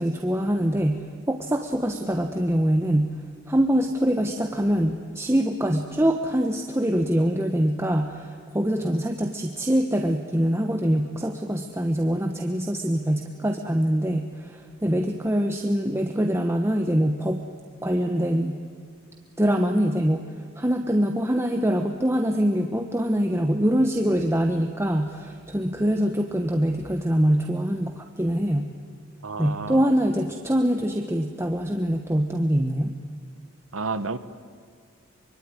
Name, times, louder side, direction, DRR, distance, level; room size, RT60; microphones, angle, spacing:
voice 1, 0.0-3.1 3.5-17.4 17.8-18.6 19.4-20.2 20.6-28.7 29.4-32.9, equal, 10° right, 4 dB, 1.1 m, -24 dB
voice 2, 29.2-29.9 33.7-34.2, right 4 dB, 90° right, 12 dB, 1.3 m, -30 dB
24.5 x 24.0 x 9.7 m, 2.1 s
head